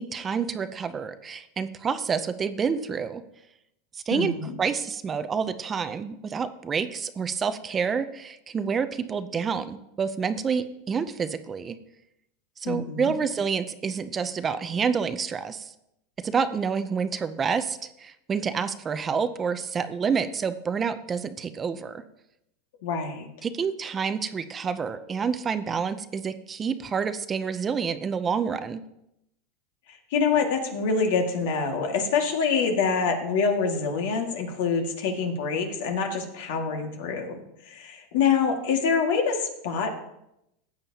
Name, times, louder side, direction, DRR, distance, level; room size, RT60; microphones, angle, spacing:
voice 1, 0.0-3.2 3.9-11.8 12.6-15.7 16.2-22.0 23.4-28.8, right 6 dB, 20° right, 11 dB, 0.5 m, -28 dB
voice 2, 4.1-4.6 12.6-13.1 22.8-23.3 30.1-39.9, left 5 dB, 70° left, 3 dB, 1.9 m, -26 dB
14.5 x 8.8 x 2.9 m, 0.82 s
supercardioid pair, 140°, 0 cm